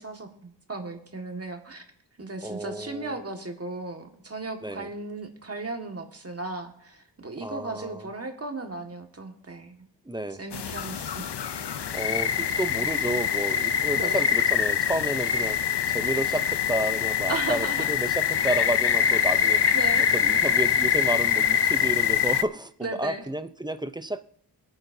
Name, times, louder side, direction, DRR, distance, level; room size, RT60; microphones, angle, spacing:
voice 1, 0.0-1.8 2.2-9.9 10.4-11.5 13.9-14.3 17.3-17.9 19.7-20.1 22.8-23.2, right 3 dB, 35° right, 4 dB, 1.9 m, -36 dB
voice 2, 2.4-3.1 4.6-4.9 7.4-8.1 10.1-10.4 11.9-19.8 20.1-24.2, right 1 dB, 10° right, 11 dB, 0.7 m, -31 dB
sound 1, 10.5-22.4, left 8 dB, 70° left, 0.8 m, -24 dB
23.5 x 9.0 x 2.8 m, 0.68 s
wide cardioid pair, 90°, 43 cm